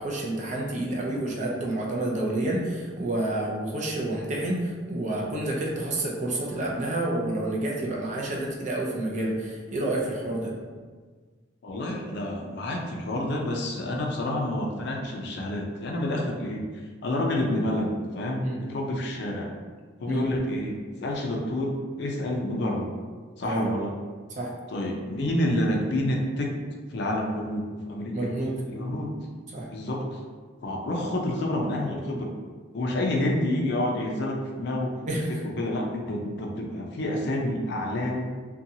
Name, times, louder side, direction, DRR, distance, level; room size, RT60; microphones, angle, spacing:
voice 1, 0.0-10.5 18.4-18.6 20.1-20.2 23.4-23.7 24.4-24.5 28.1-28.6 29.5-29.7 35.1-35.3, right 1 dB, 40° right, -2 dB, 0.5 m, -29 dB
voice 2, 11.6-16.6 17.0-19.5 20.0-22.9 23.4-23.9 24.7-26.5 26.9-28.3 28.7-29.1 29.7-30.2 30.6-32.3 32.7-34.9 35.3-38.3, left 1 dB, 60° left, 0 dB, 0.4 m, -28 dB
2.6 x 2.3 x 2.7 m, 1.5 s
head